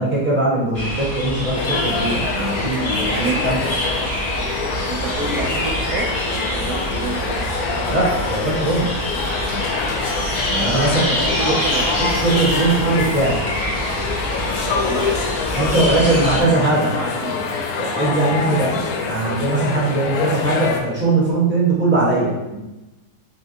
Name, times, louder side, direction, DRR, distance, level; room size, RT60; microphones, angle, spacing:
voice 1, 0.0-3.1 3.4-3.7 7.9-9.0 10.5-11.5 12.0-13.4 15.5-16.9 17.8-22.6, right 2 dB, 5° right, -7 dB, 1.2 m, -20 dB
sound 1, 0.7-16.4, equal, 30° left, 1.0 m, -25 dB
sound 2, 1.5-20.8, left 5 dB, 70° left, 1.0 m, -26 dB
voice 2, 3.1-3.4 4.8-7.4 11.1-11.9 14.6-15.2 15.7-17.5, right 3 dB, 75° right, 2 dB, 1.2 m, -29 dB
6.6 x 2.5 x 2.8 m, 1.0 s
omnidirectional pair, 1.8 m